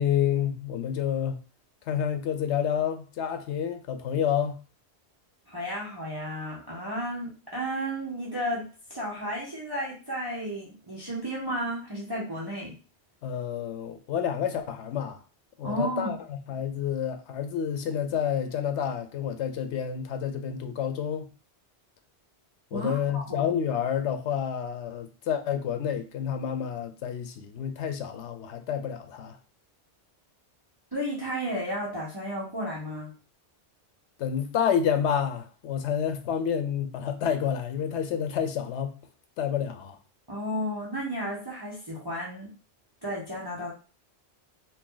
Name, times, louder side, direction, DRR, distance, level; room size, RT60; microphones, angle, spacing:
voice 1, 0.0-1.4 1.9-4.6 13.2-15.2 15.6-21.3 22.7-29.4 34.2-39.0 39.4-40.0, left 8 dB, 85° left, 0.9 m, -29 dB
voice 2, 5.5-12.7 15.6-16.2 22.7-23.5 30.9-33.1 40.3-42.5 43.0-43.7, equal, 25° right, 0.9 m, -33 dB
2.7 x 2.7 x 3.8 m
omnidirectional pair, 1.1 m